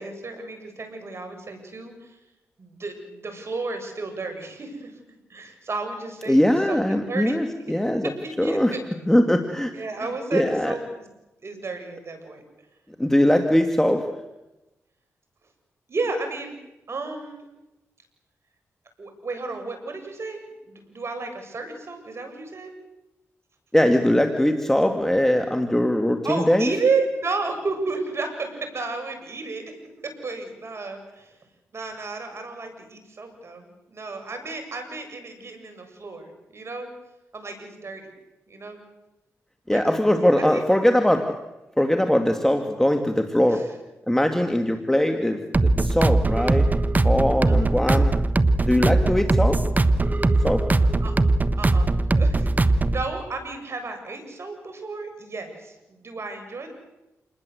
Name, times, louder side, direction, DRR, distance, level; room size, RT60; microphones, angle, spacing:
voice 1, 0.0-2.2 2.6-4.9 5.3-6.8 7.1-7.3 7.7-7.8 8.4-8.8 9.7-10.8 11.4-12.4 15.9-16.5 16.9-17.4 19.0-22.7 26.2-29.6 30.0-31.3 31.7-36.9 37.3-38.1 38.5-38.8 39.7-39.9 40.4-40.8 43.5-43.6 47.5-47.7 51.0-51.1 51.6-56.7, right 3 dB, 50° right, 6 dB, 7.6 m, -32 dB
voice 2, 6.3-8.1 8.4-8.7 9.0-9.7 10.3-10.7 13.0-14.1 23.7-26.7 39.7-41.3 41.8-43.6 44.1-46.7 47.0-48.1 48.6-49.6 50.4-50.7, left 1 dB, 5° left, 6 dB, 2.5 m, -21 dB
sound 1, 45.5-53.1, right 2 dB, 30° right, 1.4 m, -20 dB
28.5 x 20.5 x 8.1 m, 0.98 s
cardioid pair, 55°, 6 cm